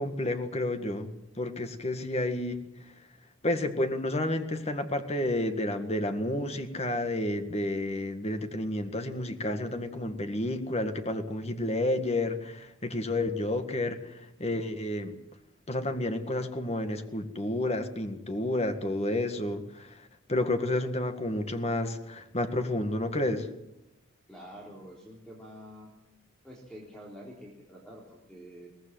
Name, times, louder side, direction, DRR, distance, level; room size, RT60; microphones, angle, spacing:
voice 1, 0.0-2.6 3.4-14.1 14.4-15.1 15.7-19.9 20.3-23.5, left 1 dB, 30° left, 7 dB, 1.8 m, -30 dB
voice 2, 24.3-25.9 26.4-28.7, equal, 5° left, -3 dB, 3.9 m, -47 dB
22.5 x 18.0 x 7.7 m, 0.88 s
head